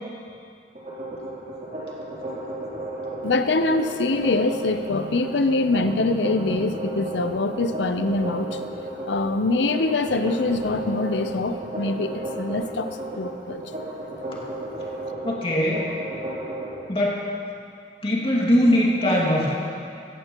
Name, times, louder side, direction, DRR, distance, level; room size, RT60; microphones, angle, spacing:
sound 1, 0.7-16.7, right 1 dB, 45° right, 3.3 m, -33 dB
voice 1, 3.2-8.6 9.1-13.6, left 2 dB, 80° left, 9 dB, 0.7 m, -24 dB
voice 2, 15.2-15.9 16.9-17.2 18.0-19.5, equal, 30° left, -4 dB, 2.1 m, -21 dB
15.5 x 14.5 x 3.0 m, 2.4 s
head